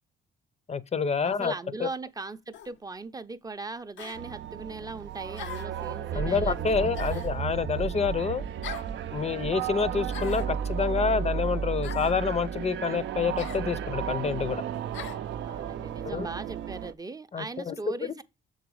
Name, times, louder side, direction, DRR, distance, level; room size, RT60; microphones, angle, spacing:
voice 1, 0.7-1.5 1.8-1.9 6.1-8.4 9.1-14.6 16.1-16.3 17.3-17.8 18.0-18.1, left 5 dB, 35° left, 0.6 m, -28 dB
voice 2, 1.2-7.3 15.4-18.2, right 3 dB, 20° right, 0.5 m, -39 dB
sound 1, 2.5-2.8 4.0-4.2 5.4-5.8 6.9-7.4 8.6-8.9 10.1-10.5 11.8-12.2 13.4-13.7 14.9-15.2, left 9 dB, 75° left, 0.6 m, -40 dB
sound 2, 4.1-16.9, right 8 dB, 70° right, 0.5 m, -34 dB
sound 3, 6.1-11.1, right 7 dB, 45° right, 0.8 m, -36 dB
6.8 x 4.0 x 4.7 m
cardioid pair, 90°, 20 cm